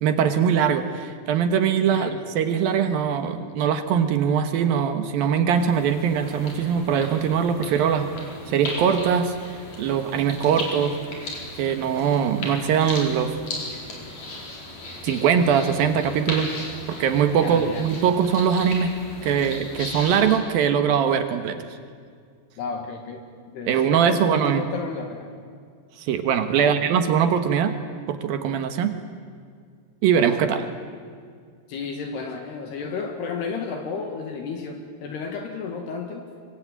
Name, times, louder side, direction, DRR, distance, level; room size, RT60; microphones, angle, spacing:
voice 1, 0.0-8.1 8.5-11.0 11.6-13.4 15.0-16.5 16.9-18.9 19.2-21.6 23.7-24.6 26.0-27.7 28.1-29.0 30.0-30.7, right 7 dB, 65° right, 8 dB, 2.6 m, -22 dB
sound 1, 5.5-20.4, left 2 dB, 40° left, 5.3 m, -36 dB
voice 2, 17.4-17.9 22.6-25.3 26.6-26.8 31.7-36.3, left 5 dB, 65° left, 4 dB, 3.7 m, -32 dB
25.5 x 24.5 x 9.2 m, 2.1 s
omnidirectional pair, 5.3 m